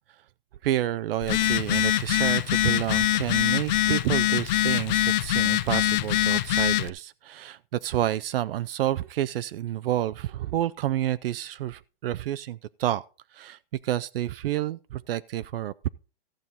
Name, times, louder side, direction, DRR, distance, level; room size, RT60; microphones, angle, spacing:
voice 1, 0.6-13.0 13.3-15.9, right 13 dB, 70° right, 0.5 m, -29 dB
Telephone, 1.2-6.9, left 13 dB, 45° left, 0.6 m, -24 dB
14.5 x 7.5 x 4.1 m
hypercardioid pair, 160°, 30 cm